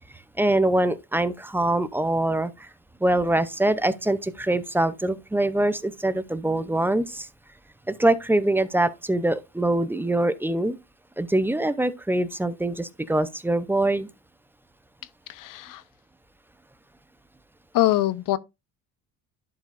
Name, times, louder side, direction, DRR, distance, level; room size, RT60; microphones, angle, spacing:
voice 1, 0.4-2.7 3.0-7.3 7.9-10.8 11.2-14.1, right 1 dB, 5° right, 0.5 m, -24 dB
voice 2, 15.3-15.8 17.7-18.4, left 14 dB, 55° left, 0.7 m, -23 dB
11.5 x 5.3 x 2.5 m
cardioid pair, 120°, 39 cm